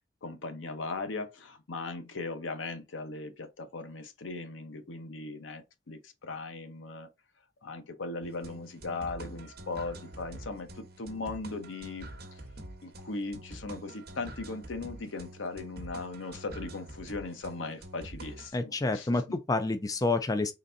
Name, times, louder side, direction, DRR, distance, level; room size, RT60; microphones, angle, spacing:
voice 1, 0.2-7.1 7.6-12.1 12.8-19.1, left 3 dB, 80° left, 0.8 m, -38 dB
sound 1, 8.2-18.5, right 1 dB, 55° right, 1.0 m, -46 dB
voice 2, 18.5-20.5, left 2 dB, 20° left, 0.4 m, -28 dB
3.9 x 3.3 x 2.5 m
head